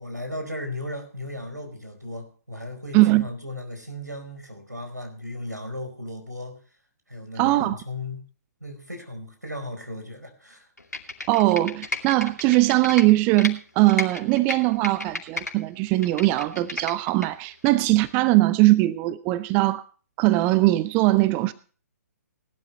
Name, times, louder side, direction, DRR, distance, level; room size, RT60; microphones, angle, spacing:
voice 1, 0.0-6.6 7.1-8.2 8.6-10.7, left 1 dB, 90° right, 4.7 m, -36 dB
voice 2, 2.9-3.3 7.4-7.8 11.3-19.8 20.2-21.5, right 18 dB, 20° right, 0.5 m, -20 dB
Computer keyboard, 10.8-13.5 13.9-15.5 15.9-17.3 17.7-17.8, left 2 dB, 75° left, 2.6 m, -33 dB
19.0 x 12.0 x 3.3 m
figure-of-eight pair, 130°, 9 cm